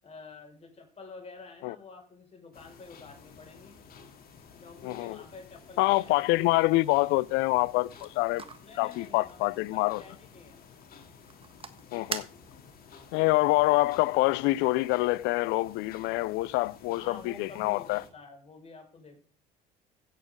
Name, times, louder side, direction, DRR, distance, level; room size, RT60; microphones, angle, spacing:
voice 1, 0.0-3.7 4.6-6.5 8.4-10.6 16.9-19.2, left 4 dB, 35° left, 5.4 m, -49 dB
sound 1, 2.5-18.1, left 6 dB, 50° left, 2.9 m, -53 dB
voice 2, 4.8-5.2 5.8-8.4 8.8-10.0 11.9-12.3 13.1-18.0, left 20 dB, 70° left, 0.5 m, -26 dB
sound 2, 7.6-12.9, right 5 dB, 30° right, 1.5 m, -45 dB
16.0 x 8.4 x 3.7 m
hypercardioid pair, 65°, 19 cm